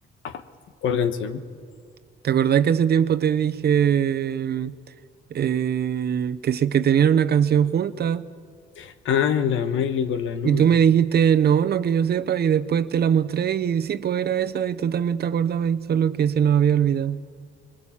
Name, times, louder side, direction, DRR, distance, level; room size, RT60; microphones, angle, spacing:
voice 1, 0.8-1.4 8.8-10.7, left 8 dB, 80° left, 1.3 m, -25 dB
voice 2, 2.2-4.7 5.3-8.3 10.4-17.2, right 8 dB, 55° right, 0.9 m, -21 dB
25.5 x 22.5 x 7.4 m
cardioid pair, 90°, 20 cm